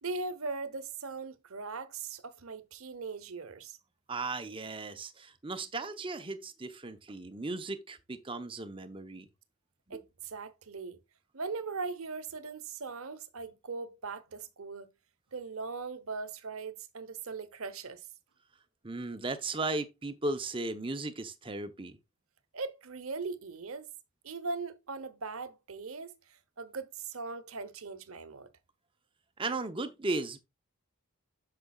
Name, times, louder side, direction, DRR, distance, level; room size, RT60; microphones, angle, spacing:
voice 1, 0.0-3.8 9.9-11.0 11.3-14.9 15.3-18.1 22.5-23.9 24.2-28.5, right 4 dB, 85° right, 0.9 m, -40 dB
voice 2, 4.1-9.3 9.9-10.0 18.8-22.0 29.4-30.4, right 2 dB, 25° right, 0.8 m, -36 dB
8.5 x 6.7 x 2.4 m
head